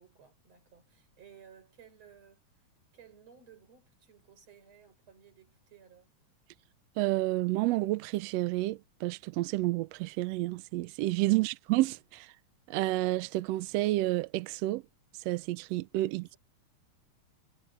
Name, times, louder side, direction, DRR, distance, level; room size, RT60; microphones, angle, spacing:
voice 1, 0.0-2.6 2.9-6.1 11.3-11.5 16.1-16.4, right 8 dB, 55° right, 6.0 m, -57 dB
voice 2, 7.0-12.3 12.7-14.8 15.2-16.3, right 18 dB, 85° right, 1.5 m, -30 dB
omnidirectional pair, 3.5 m